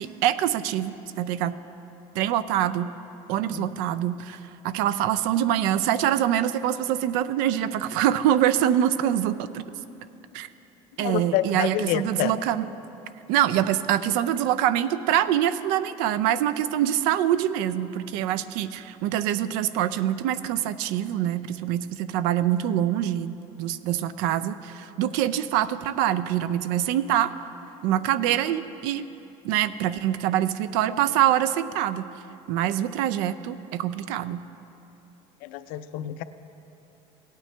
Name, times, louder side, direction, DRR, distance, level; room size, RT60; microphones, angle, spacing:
voice 1, 0.0-1.6 2.1-2.9 3.3-4.4 4.6-9.6 10.3-10.5 11.0-12.6 13.3-27.3 27.8-29.1 29.4-32.1 32.5-34.4, right 11 dB, 80° right, 15 dB, 0.4 m, -25 dB
voice 2, 11.0-12.3 35.4-36.2, left 12 dB, 75° left, 12 dB, 0.5 m, -28 dB
17.5 x 9.1 x 3.3 m, 2.9 s
cardioid pair, 150°, 14 cm